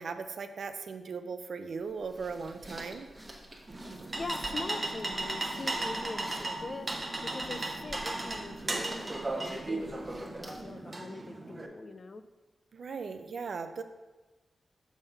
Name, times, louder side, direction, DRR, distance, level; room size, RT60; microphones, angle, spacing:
voice 1, 0.0-3.1 12.7-13.8, right 5 dB, 70° right, 9 dB, 0.5 m, -38 dB
sound 1, 1.8-10.8, right 1 dB, 10° right, 1.2 m, -50 dB
sound 2, 3.7-11.7, right 2 dB, 25° right, 0.7 m, -36 dB
voice 2, 4.2-12.2, left 3 dB, 45° left, 10 dB, 0.4 m, -42 dB
7.2 x 3.6 x 5.4 m, 1.2 s
wide cardioid pair, 115°, 0 cm